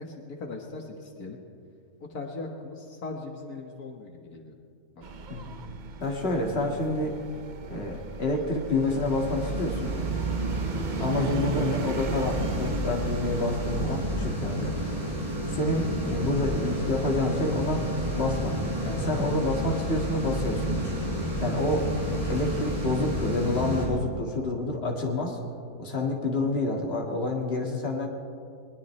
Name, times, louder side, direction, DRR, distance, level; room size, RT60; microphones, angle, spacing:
voice 1, 0.0-1.4 2.1-4.6 4.9-5.1 11.1-11.4, left 3 dB, 75° left, 2 dB, 1.9 m, -39 dB
sound 1, 5.0-22.8, right 5 dB, 55° right, 0.5 m, -38 dB
voice 2, 6.0-7.2 7.7-10.1 11.0-14.7 15.5-17.8 18.1-18.6 18.9-20.6 21.4-21.9 22.3-25.4 25.8-28.1, left 2 dB, 40° left, 0 dB, 2.1 m, -28 dB
sound 2, 8.5-23.8, right 1 dB, 20° right, 5.4 m, -31 dB
21.0 x 20.5 x 3.2 m, 2.4 s
omnidirectional pair, 1.6 m